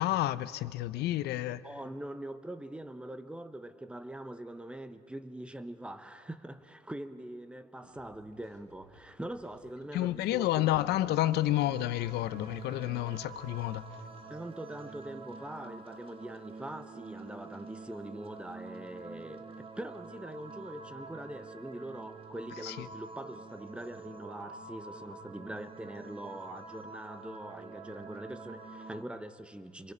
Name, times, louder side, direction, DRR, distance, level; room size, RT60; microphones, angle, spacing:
voice 1, 0.0-1.6 9.9-13.8 22.6-22.9, left 15 dB, 80° left, 0.7 m, -30 dB
voice 2, 1.6-10.8 11.2-11.3 14.3-29.9, right 1 dB, 5° right, 1.0 m, -43 dB
sound 1, 7.8-13.8, right 3 dB, 70° right, 3.1 m, -61 dB
sound 2, 10.9-29.0, right 4 dB, 35° right, 1.5 m, -47 dB
28.5 x 22.5 x 5.5 m
cardioid pair, 110°, 17 cm